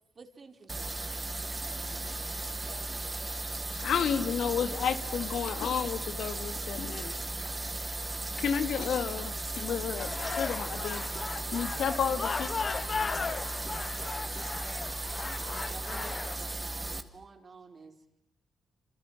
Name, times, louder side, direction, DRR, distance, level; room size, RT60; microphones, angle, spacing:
voice 1, 0.1-1.0 15.5-17.9, right 4 dB, 45° right, 6 dB, 5.0 m, -51 dB
sound 1, 0.7-17.0, right 2 dB, 25° right, 2.6 m, -36 dB
voice 2, 1.6-3.4 4.6-4.9 5.2-5.8, right 7 dB, 80° right, 5 dB, 4.6 m, -56 dB
voice 3, 3.7-7.2 8.4-11.0 11.5-12.5, left 7 dB, 75° left, 10 dB, 2.6 m, -31 dB
sound 2, 10.0-16.4, left 5 dB, 45° left, 1.4 m, -36 dB
27.5 x 27.5 x 7.6 m, 0.77 s
cardioid pair, 75°, 0 cm